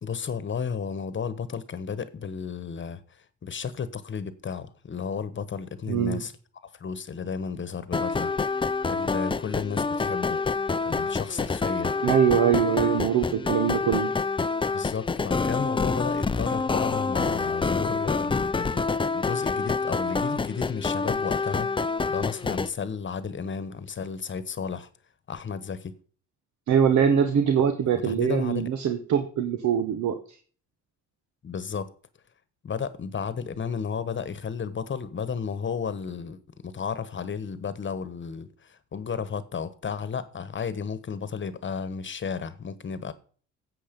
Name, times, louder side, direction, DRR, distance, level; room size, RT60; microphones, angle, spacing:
voice 1, 0.0-3.0 3.4-6.3 6.6-8.3 8.9-10.4 10.8-12.0 14.7-21.7 22.1-24.9 25.3-25.9 27.9-28.7 31.4-31.9 32.6-43.1, left 6 dB, 40° left, 1.2 m, -33 dB
voice 2, 5.9-6.2 12.0-14.1 26.7-30.4, right 8 dB, 70° right, 1.3 m, -23 dB
sound 1, 7.9-22.7, left 4 dB, 15° left, 0.5 m, -27 dB
11.5 x 7.9 x 5.3 m
cardioid pair, 90°, 30 cm